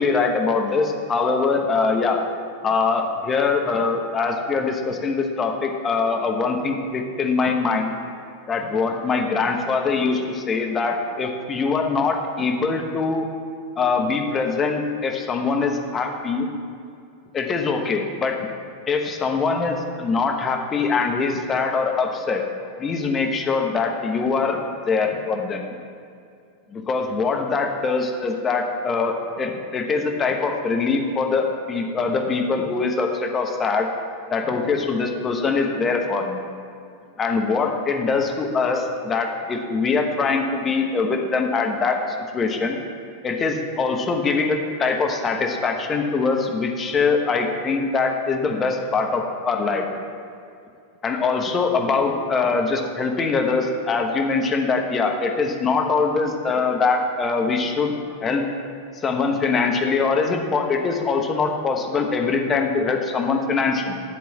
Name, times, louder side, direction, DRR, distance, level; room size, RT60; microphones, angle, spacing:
voice 1, 0.0-2.2 2.6-7.9 8.5-13.3 13.8-16.5 17.3-18.5 18.9-22.4 22.8-24.6 24.9-25.6 26.7-33.9 34.3-36.4 37.2-42.0 42.3-42.8 43.2-49.8 51.0-57.9 58.2-58.5 59.0-63.9, left 4 dB, 25° left, 3 dB, 1.2 m, -23 dB
10.5 x 3.8 x 7.3 m, 2.4 s
hypercardioid pair, 100°, 0 cm